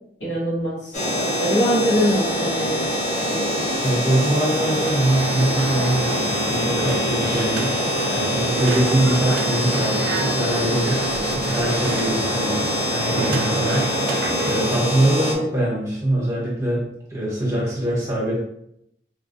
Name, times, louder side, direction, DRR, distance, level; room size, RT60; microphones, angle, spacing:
voice 1, 0.2-1.0 1.4-2.8 3.3-3.6, equal, 75° left, -6 dB, 1.1 m, -23 dB
sound 1, 0.9-15.3, left 1 dB, 40° left, 0.6 m, -24 dB
voice 2, 3.8-7.8 8.1-12.7 13.1-18.4, right 1 dB, 15° right, -6 dB, 0.9 m, -23 dB
sound 2, 4.5-14.8, right 4 dB, 80° right, 0.3 m, -30 dB
3.7 x 2.2 x 2.6 m, 0.75 s
head